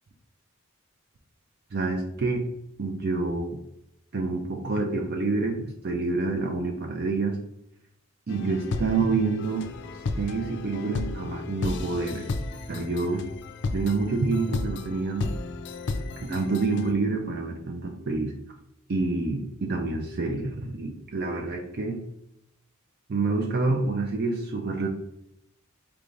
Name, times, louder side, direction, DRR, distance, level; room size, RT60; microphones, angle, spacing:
voice 1, 1.7-2.5 2.8-3.6 4.1-7.4 8.3-9.7 10.2-12.3 12.7-13.2 13.7-15.3 16.2-18.3 18.9-22.0 23.1-24.9, right 3 dB, 50° right, 2 dB, 0.5 m, -27 dB
sound 1, 8.3-16.9, left 3 dB, 55° left, 0.4 m, -34 dB
4.6 x 3.2 x 2.6 m, 0.78 s
head